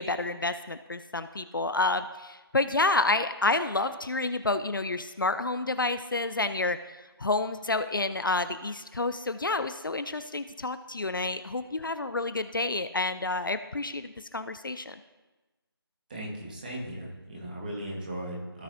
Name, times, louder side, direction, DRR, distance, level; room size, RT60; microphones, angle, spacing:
voice 1, 0.0-6.8 7.2-15.0, left 2 dB, 55° left, 11 dB, 0.4 m, -29 dB
voice 2, 16.1-18.6, right 1 dB, 20° right, -3 dB, 1.4 m, -37 dB
16.0 x 6.2 x 2.7 m, 1.2 s
figure-of-eight pair, 165°, 13 cm